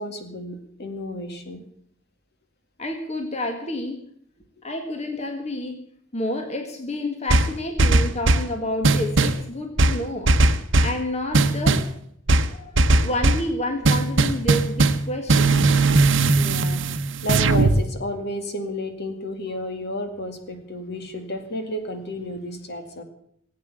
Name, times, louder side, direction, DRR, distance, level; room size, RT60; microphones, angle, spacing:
voice 1, 0.0-1.6 4.6-4.7 16.3-23.0, left 1 dB, 55° left, 6 dB, 2.2 m, -32 dB
voice 2, 2.8-4.0 4.6-5.8 6.1-10.4 10.8-11.8 12.5-15.6, left 1 dB, 35° left, 4 dB, 1.8 m, -29 dB
sound 1, 7.3-8.5 8.8-9.4 9.8-11.0 11.3-11.9 12.3-13.5 13.8-17.8, right 2 dB, 65° right, 0.9 m, -18 dB
17.0 x 8.7 x 8.4 m, 0.69 s
head